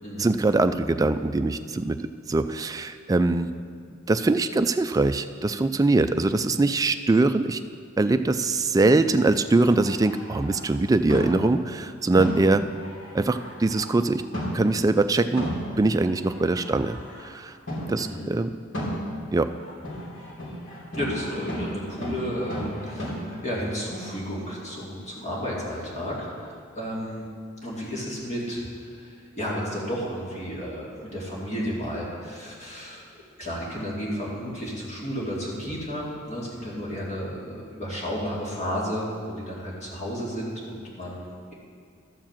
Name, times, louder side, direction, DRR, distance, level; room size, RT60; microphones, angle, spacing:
voice 1, 0.2-2.0 2.3-3.5 4.1-7.6 8.0-12.6 13.1-14.2 14.5-15.5 15.8-17.0 17.2-17.5 17.8-18.5 19.3-19.5, right 2 dB, 20° right, 9 dB, 0.3 m, -22 dB
sound 1, 9.3-10.8 11.1-11.6 12.2-14.1 14.3-14.8 15.4-17.3 17.7-18.0 18.7-23.1, equal, 65° left, 2.9 m, -34 dB
voice 2, 17.9-18.3 20.9-27.2 27.6-28.6 28.9-33.0 33.4-41.5, equal, 35° left, -5 dB, 2.4 m, -32 dB
12.5 x 4.7 x 7.4 m, 2.2 s
head